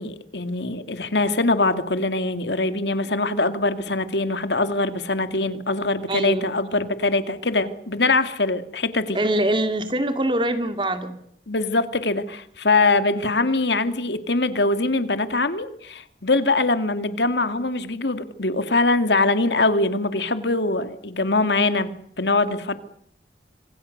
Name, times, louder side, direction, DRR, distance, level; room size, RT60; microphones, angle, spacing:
voice 1, 0.0-9.2 11.5-21.9 22.2-22.7, left 2 dB, 80° left, 10 dB, 2.3 m, -23 dB
voice 2, 6.1-6.5 9.1-11.2, right 1 dB, 30° right, 8 dB, 2.3 m, -23 dB
26.5 x 26.0 x 6.7 m, 0.68 s
head